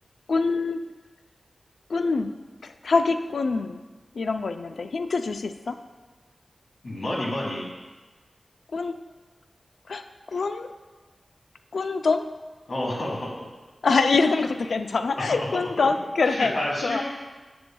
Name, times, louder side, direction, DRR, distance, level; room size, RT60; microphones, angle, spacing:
voice 1, 0.3-0.8 1.9-2.3 2.6-3.8 4.1-5.8 8.7-8.9 9.9-10.7 11.7-12.3 13.8-16.5 16.8-17.0, left 4 dB, 85° left, 8 dB, 0.3 m, -25 dB
voice 2, 6.8-7.7 12.7-13.4 15.2-15.4 16.3-17.0, left 1 dB, 65° left, -3 dB, 1.7 m, -29 dB
7.6 x 7.0 x 2.2 m, 1.3 s
wide cardioid pair, 110°, 0 cm